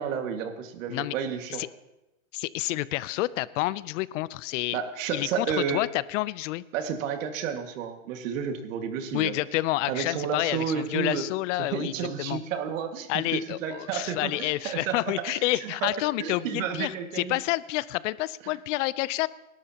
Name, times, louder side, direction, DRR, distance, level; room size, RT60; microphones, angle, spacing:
voice 1, 0.0-1.6 4.7-5.8 6.7-9.3 9.9-11.3 11.6-15.0 15.3-15.9 16.2-17.4 18.4-18.5, right 7 dB, 70° right, 6 dB, 2.0 m, -31 dB
voice 2, 2.3-4.8 5.1-6.6 9.1-11.9 12.2-12.4 13.1-19.3, left 17 dB, 65° left, 19 dB, 0.6 m, -29 dB
25.0 x 12.5 x 2.9 m, 0.97 s
supercardioid pair, 125°, 40 cm